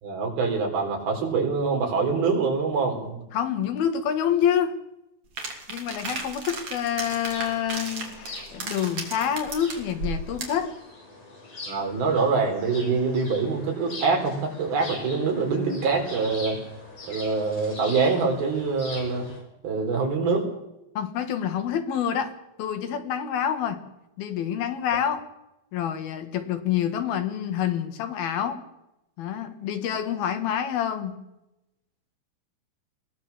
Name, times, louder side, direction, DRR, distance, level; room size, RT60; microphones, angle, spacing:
voice 1, 0.0-3.2 11.7-16.6 17.1-19.3 19.6-20.5, right 4 dB, 70° right, 2 dB, 5.9 m, -25 dB
voice 2, 3.3-4.8 5.7-10.8 21.0-23.8 24.2-25.2 25.7-28.6 29.2-31.2, left 9 dB, 75° left, 8 dB, 3.4 m, -27 dB
sound 1, 5.4-10.6, right 3 dB, 40° right, 3.8 m, -35 dB
Birdsong audio, 6.8-19.4, left 2 dB, 50° left, 8.5 m, -42 dB
21.5 x 17.0 x 7.2 m, 0.88 s
omnidirectional pair, 4.5 m